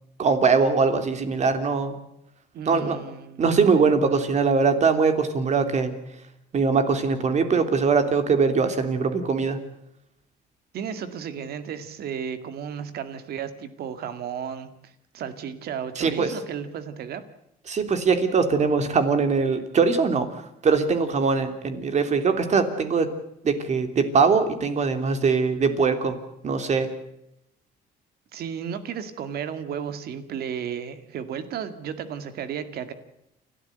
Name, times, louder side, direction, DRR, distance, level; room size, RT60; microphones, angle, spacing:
voice 1, 0.2-2.0 2.7-3.0 3.4-5.9 6.5-9.6 16.0-16.3 17.7-23.1 23.4-26.2 26.4-26.9, right 5 dB, 45° right, 8 dB, 3.1 m, -22 dB
voice 2, 2.5-3.4 10.7-14.7 15.1-17.2 28.3-32.9, right 8 dB, 65° right, 11 dB, 2.0 m, -33 dB
29.5 x 13.0 x 8.0 m, 0.82 s
cardioid pair, 110°, 17 cm